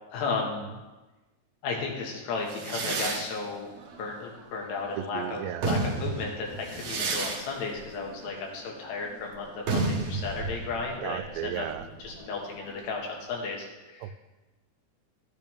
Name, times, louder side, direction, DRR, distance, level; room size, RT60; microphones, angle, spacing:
voice 1, 0.1-0.7 1.6-3.7 4.0-11.7 12.0-14.1, left 4 dB, 80° left, 0 dB, 3.6 m, -34 dB
sound 1, 2.5-5.0 5.4-12.9, right 3 dB, 60° right, 2.0 m, -33 dB
voice 2, 5.0-5.7 11.0-11.8 14.0-14.1, right 11 dB, 85° right, 10 dB, 2.7 m, -35 dB
12.5 x 9.3 x 3.5 m, 1.1 s
omnidirectional pair, 4.8 m